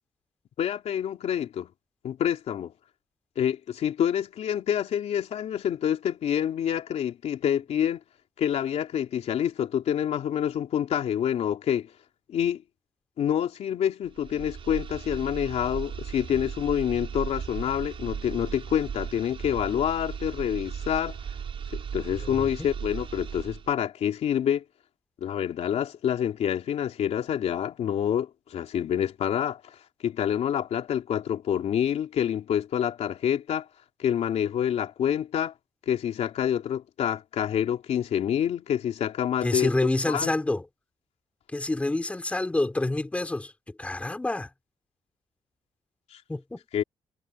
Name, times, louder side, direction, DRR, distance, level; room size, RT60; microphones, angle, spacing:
voice 1, 0.6-1.7 2.0-2.7 3.4-8.0 8.4-11.9 12.3-12.6 13.2-21.1 21.7-24.6 25.2-29.6 30.0-33.7 34.0-35.5 35.9-39.7 40.0-40.3 46.1-46.2 46.7-46.8, left 9 dB, 85° left, 3.1 m, -27 dB
sound 1, 14.1-23.7, right 7 dB, 55° right, 6.5 m, -37 dB
voice 2, 22.2-22.7 39.4-40.6 41.5-44.5 46.3-46.6, left 2 dB, 10° left, 4.2 m, -28 dB
wide cardioid pair, 170°, 11 cm